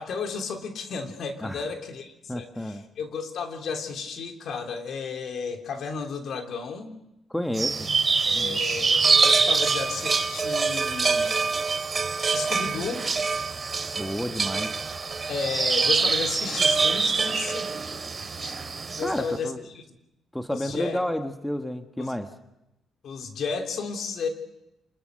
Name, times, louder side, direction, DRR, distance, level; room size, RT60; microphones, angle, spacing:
voice 1, 0.0-7.0 8.2-11.3 12.3-13.1 15.3-17.7 18.2-19.8 20.5-21.0 22.0-22.1 23.0-24.3, left 5 dB, 65° left, 4 dB, 3.3 m, -33 dB
voice 2, 2.3-2.8 7.3-8.0 8.3-8.6 14.0-14.8 19.0-19.6 20.3-22.3, left 1 dB, 5° left, 6 dB, 1.5 m, -31 dB
sound 1, 7.5-19.2, right 4 dB, 35° right, 2.7 m, -25 dB
27.0 x 21.0 x 6.5 m, 0.91 s
cardioid pair, 90°, 0 cm